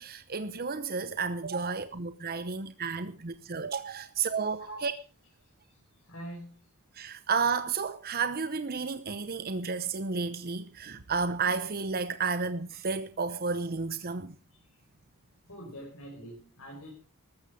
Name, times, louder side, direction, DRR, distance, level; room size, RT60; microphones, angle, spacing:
voice 1, 0.0-4.9 6.9-14.3, right 5 dB, 45° right, 0.9 m, -32 dB
voice 2, 4.6-4.9 6.0-6.6 15.5-16.9, right 1 dB, 65° left, 5.2 m, -44 dB
14.0 x 13.5 x 5.2 m
head